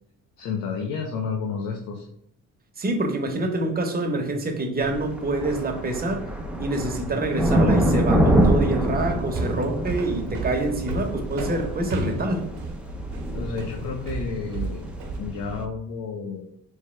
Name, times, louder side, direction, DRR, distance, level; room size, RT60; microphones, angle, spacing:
voice 1, 0.4-2.1 13.3-14.8 15.2-16.4, left 5 dB, 85° left, 0 dB, 0.7 m, -31 dB
voice 2, 2.8-6.3 6.6-12.5, right 2 dB, 30° right, 3 dB, 0.9 m, -26 dB
sound 1, 4.8-15.6, right 1 dB, 5° right, 0.6 m, -26 dB
sound 2, 9.0-15.2, right 3 dB, 70° right, 0.8 m, -33 dB
3.3 x 3.1 x 4.3 m, 0.70 s
cardioid pair, 90°, 30 cm